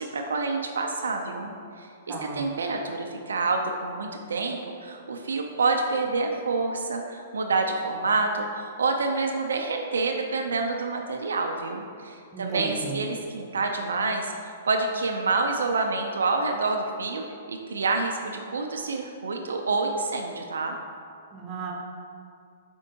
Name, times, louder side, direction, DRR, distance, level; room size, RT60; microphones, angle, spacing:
voice 1, 0.0-1.5 1.8-20.7, right 3 dB, 90° right, 3 dB, 0.4 m, -28 dB
voice 2, 2.1-2.5 12.3-13.0 21.3-21.7, right 4 dB, 25° right, -1 dB, 0.8 m, -34 dB
5.2 x 3.5 x 2.7 m, 2.3 s
hypercardioid pair, 135°, 0 cm